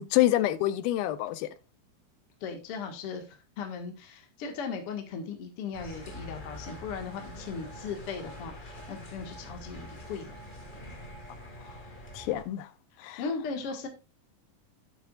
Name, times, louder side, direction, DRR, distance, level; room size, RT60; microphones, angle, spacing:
voice 1, 0.0-1.5 12.1-12.7 13.0-13.2, left 14 dB, 85° left, 2.6 m, -27 dB
voice 2, 2.4-10.4 12.9-13.9, left 5 dB, 50° left, 2.2 m, -38 dB
sound 1, 5.7-12.4, left 1 dB, 30° left, 0.9 m, -45 dB
11.5 x 9.2 x 2.5 m
omnidirectional pair, 4.2 m